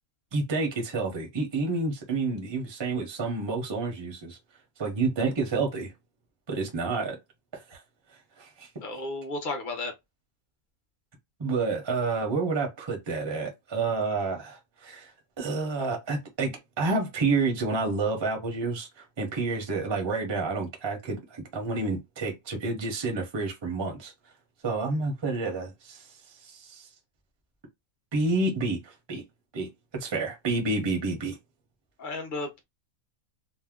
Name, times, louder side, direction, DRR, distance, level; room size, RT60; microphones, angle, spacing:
voice 1, 0.3-4.4 4.8-5.9 6.5-7.2 7.5-7.8 8.4-8.7 11.4-15.1 15.4-24.1 24.6-26.1 26.4-26.9 28.1-29.2 29.5-31.4, right 3 dB, 25° right, 0.6 m, -29 dB
voice 2, 8.8-9.9 32.0-32.6, left 2 dB, 45° left, 0.8 m, -33 dB
2.7 x 2.1 x 3.5 m
omnidirectional pair, 1.5 m